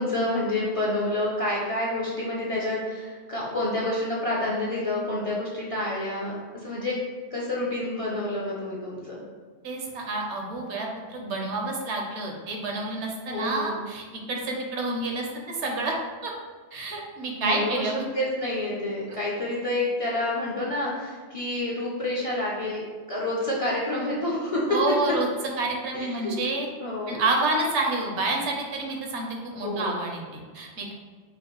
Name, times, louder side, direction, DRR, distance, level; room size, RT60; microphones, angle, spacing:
voice 1, 0.0-7.0 7.3-9.2 13.3-13.8 17.4-17.9 18.1-22.8 23.1-24.8 25.1-25.2 25.9-26.4 26.8-27.2 29.5-30.0, left 1 dB, 40° left, -5 dB, 0.5 m, -28 dB
voice 2, 9.6-16.0 16.2-16.3 16.7-18.0 24.7-25.3 25.6-26.7 27.1-30.9, right 2 dB, 80° right, 0 dB, 1.0 m, -29 dB
5.0 x 2.1 x 3.0 m, 1.5 s
omnidirectional pair, 1.2 m